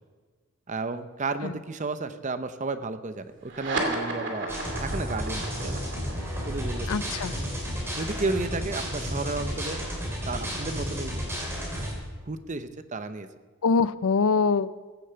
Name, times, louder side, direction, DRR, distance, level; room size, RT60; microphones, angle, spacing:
voice 1, 0.7-4.5 4.8-5.8 6.4-6.9 8.0-9.8 10.3-11.1 12.3-13.3, right 3 dB, 35° right, 11 dB, 0.7 m, -32 dB
sound 1, 3.4-10.3, right 2 dB, 55° right, 2.5 m, -35 dB
sound 2, 4.5-11.9, equal, 10° right, 3.5 m, -32 dB
voice 2, 6.9-7.3 13.6-14.7, left 4 dB, 80° left, 17 dB, 0.5 m, -23 dB
15.5 x 8.5 x 6.8 m, 1.4 s
head